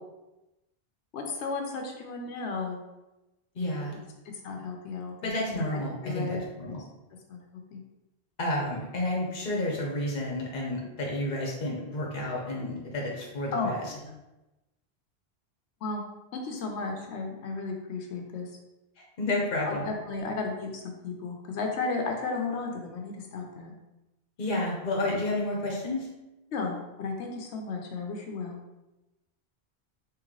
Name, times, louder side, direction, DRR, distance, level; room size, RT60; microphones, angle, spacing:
voice 1, 1.1-2.9 4.4-5.6 6.0-6.4 7.3-7.4 7.7-7.8 13.5-14.1 15.8-16.0 16.3-18.5 19.7-23.7 26.5-28.6, left 4 dB, 85° left, 2 dB, 1.0 m, -34 dB
voice 2, 3.5-3.9 5.2-6.8 8.4-13.9 19.2-19.9 24.4-26.1, left 1 dB, 50° left, -2 dB, 1.0 m, -30 dB
3.7 x 3.1 x 3.1 m, 1.0 s
omnidirectional pair, 1.1 m